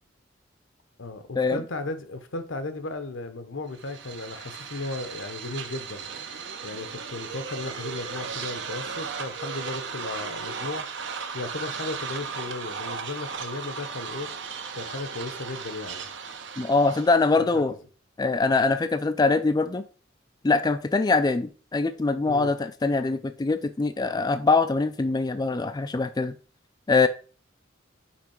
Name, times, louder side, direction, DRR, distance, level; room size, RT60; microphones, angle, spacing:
voice 1, 1.0-6.1 6.6-10.8 11.3-14.3 14.7-16.1 17.3-17.7 22.3-22.5, left 2 dB, 75° left, 0.9 m, -35 dB
sound 1, 3.7-17.3, right 6 dB, 65° right, 0.8 m, -36 dB
voice 2, 16.6-17.7 18.2-19.8 20.4-26.3 26.9-27.1, left 3 dB, 20° left, 0.3 m, -23 dB
5.9 x 4.7 x 4.4 m
head